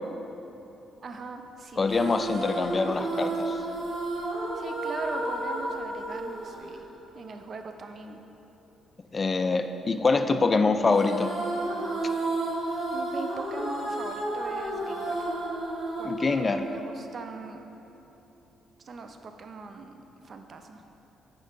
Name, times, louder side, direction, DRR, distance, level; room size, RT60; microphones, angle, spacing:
voice 1, 1.0-2.1 4.5-6.9 7.1-8.2 12.9-15.3 16.0-17.6 18.8-20.0 20.2-20.8, right 4 dB, 45° right, 6 dB, 0.4 m, -40 dB
voice 2, 1.8-3.6 9.1-11.3 16.0-16.6, left 3 dB, 30° left, 8 dB, 0.3 m, -24 dB
sound 1, 1.9-7.4 10.9-17.3, right 2 dB, 65° right, 1.3 m, -32 dB
8.8 x 3.7 x 3.6 m, 2.9 s
cardioid pair, 90°, 0 cm